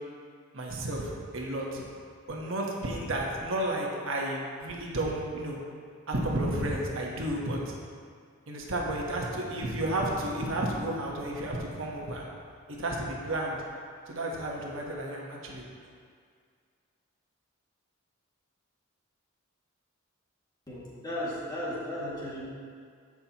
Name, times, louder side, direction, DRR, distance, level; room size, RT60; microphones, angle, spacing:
voice 1, 0.5-1.8 2.3-5.6 6.1-7.7 8.5-12.3 12.7-13.6 14.1-15.6, right 1 dB, 65° right, -2 dB, 1.2 m, -32 dB
voice 2, 20.7-22.4, left 1 dB, 20° left, -8 dB, 2.1 m, -35 dB
15.5 x 5.9 x 3.0 m, 2.1 s
head